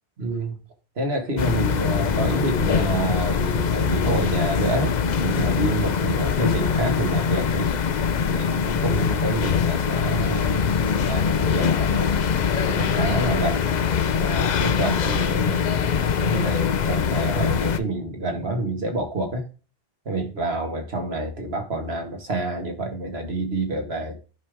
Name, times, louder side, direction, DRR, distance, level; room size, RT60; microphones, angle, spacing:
voice 1, 0.2-0.6 1.0-7.8 8.3-12.1 12.6-13.7 14.1-19.4 20.1-24.2, right 2 dB, 75° right, 3 dB, 2.0 m, -28 dB
sound 1, 1.4-17.8, left 7 dB, 50° left, 0.7 m, -23 dB
11.0 x 5.1 x 3.6 m, 0.34 s
omnidirectional pair, 1.1 m